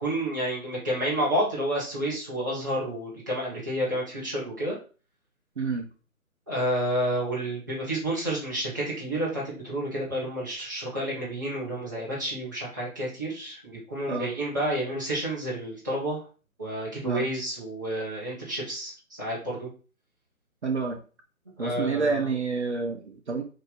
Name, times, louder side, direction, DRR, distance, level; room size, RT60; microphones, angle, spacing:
voice 1, 0.0-4.8 6.5-16.2 16.6-19.7 21.6-22.3, right 1 dB, 15° right, -9 dB, 0.6 m, -30 dB
voice 2, 5.6-5.9 14.1-14.3 17.0-17.3 20.6-21.0 21.6-23.4, right 4 dB, 55° right, 4 dB, 0.6 m, -28 dB
2.8 x 2.6 x 3.9 m, 0.37 s
figure-of-eight pair, 145°, 42 cm